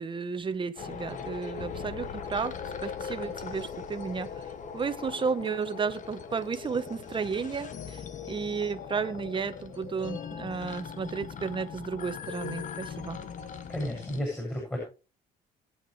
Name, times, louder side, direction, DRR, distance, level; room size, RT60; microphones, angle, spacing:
voice 1, 0.0-4.5 4.7-13.2, right 5 dB, 30° right, 11 dB, 1.3 m, -33 dB
sound 1, 0.8-14.2, left 6 dB, 50° left, 1.5 m, -40 dB
voice 2, 13.7-14.8, left 1 dB, 10° left, 0 dB, 7.9 m, -32 dB
22.5 x 9.2 x 3.4 m, 0.34 s
cardioid pair, 110°, 17 cm